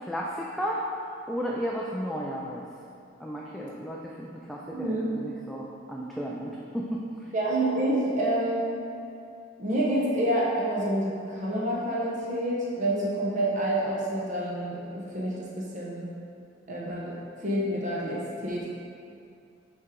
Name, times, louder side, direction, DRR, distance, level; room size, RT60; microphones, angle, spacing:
voice 1, 0.1-0.8 1.3-2.6 3.2-7.0, equal, ahead, -4 dB, 0.4 m, -33 dB
voice 2, 4.7-5.0 7.3-8.7 9.6-16.0 16.7-17.1 17.4-18.7, right 1 dB, 40° right, -6 dB, 0.9 m, -28 dB
6.5 x 4.4 x 3.7 m, 2.5 s
head